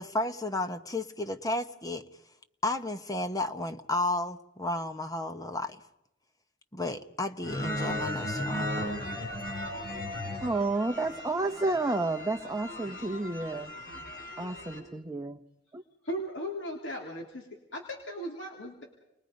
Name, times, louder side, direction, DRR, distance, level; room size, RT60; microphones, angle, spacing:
voice 1, 0.0-2.0 2.6-5.8 6.7-8.9, left 2 dB, 20° left, 9 dB, 1.2 m, -33 dB
sound 1, 7.4-14.8, left 1 dB, 50° left, 7.9 m, -36 dB
voice 2, 10.4-13.7 14.4-15.4 15.7-15.8, right 2 dB, 15° right, 4 dB, 0.9 m, -31 dB
voice 3, 16.0-17.5 17.7-18.8, equal, 70° left, 1 dB, 3.3 m, -37 dB
30.0 x 22.0 x 5.3 m, 0.86 s
head